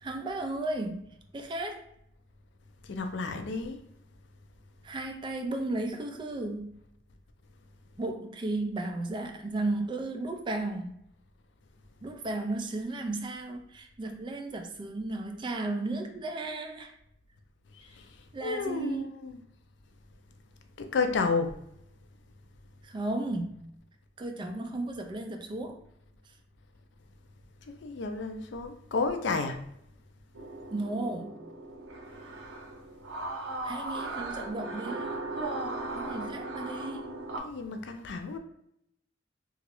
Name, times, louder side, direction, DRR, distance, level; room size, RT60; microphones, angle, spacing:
voice 1, 0.0-1.8 4.8-6.8 8.0-11.0 12.0-17.0 18.3-19.1 22.8-23.6 24.2-25.8 30.7-31.3 33.6-35.2 35.9-37.1, right 2 dB, 25° right, 0.3 m, -34 dB
voice 2, 2.9-3.8 17.7-17.9 18.4-19.4 20.8-21.5 27.7-29.6 37.4-38.4, left 4 dB, 70° left, 0.4 m, -31 dB
sound 1, 30.3-37.4, right 2 dB, 90° right, 0.6 m, -37 dB
3.0 x 2.4 x 3.0 m
head